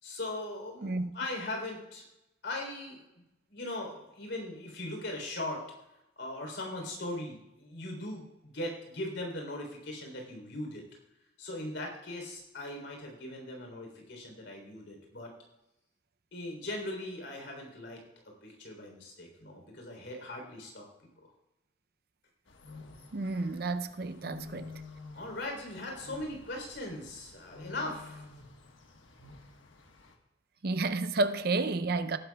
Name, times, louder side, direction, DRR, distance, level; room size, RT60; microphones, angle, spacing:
voice 1, 0.0-2.0 2.4-3.2 3.5-5.6 6.2-10.8 11.4-15.3 16.3-21.3 25.1-28.3, left 1 dB, 70° left, 3.6 m, -39 dB
sound 1, 22.5-30.1, left 3 dB, 90° left, 1.4 m, -50 dB
voice 2, 23.1-24.8 30.6-32.2, right 3 dB, 55° right, 0.6 m, -31 dB
18.5 x 10.5 x 2.3 m
head